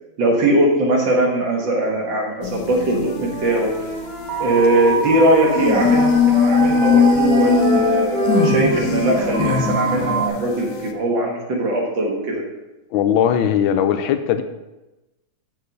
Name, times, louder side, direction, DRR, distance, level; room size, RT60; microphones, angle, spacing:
voice 1, 0.2-3.9 4.4-12.4, right 1 dB, 70° right, 0 dB, 2.3 m, -20 dB
sound 1, 2.4-5.2 5.5-10.9, left 5 dB, 65° left, 1.0 m, -20 dB
Wind instrument woodwind instrument, 2.5-6.2 6.5-10.9, left 3 dB, 35° left, 1.4 m, -29 dB
sound 2, 4.0-10.3, right 6 dB, 90° right, 1.6 m, -26 dB
voice 2, 12.9-14.4, left 9 dB, 80° left, 9 dB, 1.4 m, -18 dB
6.6 x 6.4 x 5.3 m, 1.0 s
omnidirectional pair, 2.1 m